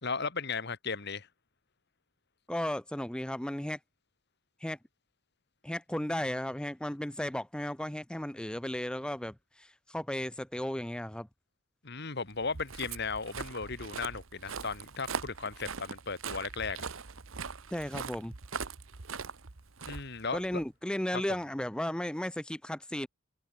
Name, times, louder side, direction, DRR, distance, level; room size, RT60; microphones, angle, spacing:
voice 1, 0.0-1.3 11.8-16.9 19.9-20.6 21.1-21.2, left 4 dB, 55° left, 1.9 m, -36 dB
voice 2, 2.5-3.8 4.6-4.8 5.6-11.3 17.7-18.3 20.3-23.1, left 1 dB, 5° left, 0.6 m, -35 dB
Walk footsteps, 12.4-20.7, right 5 dB, 80° right, 1.3 m, -41 dB
head